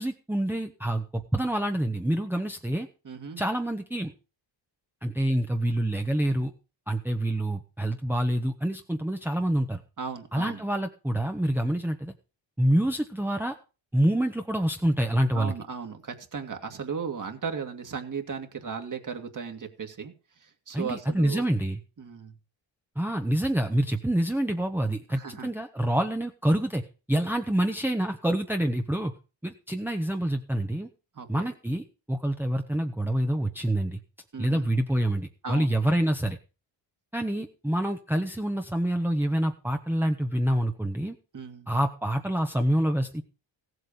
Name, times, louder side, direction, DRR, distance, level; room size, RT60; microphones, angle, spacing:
voice 1, 0.0-2.9 3.4-4.1 5.0-6.5 6.9-9.8 10.3-12.1 12.6-13.5 13.9-15.5 20.7-21.8 23.0-26.8 27.1-29.1 29.4-30.9 31.3-34.0 34.4-36.4 37.1-41.1 41.7-43.2, right 1 dB, 5° right, 4 dB, 1.1 m, -27 dB
voice 2, 3.0-3.4 10.0-10.6 15.3-20.1 20.4-21.5 22.0-22.4 25.1-25.5 31.2-31.5 34.3-34.7 35.4-35.7 41.3-41.7, right 6 dB, 40° right, 4 dB, 2.2 m, -36 dB
16.5 x 8.0 x 5.5 m, 0.33 s
wide cardioid pair, 140°, 46 cm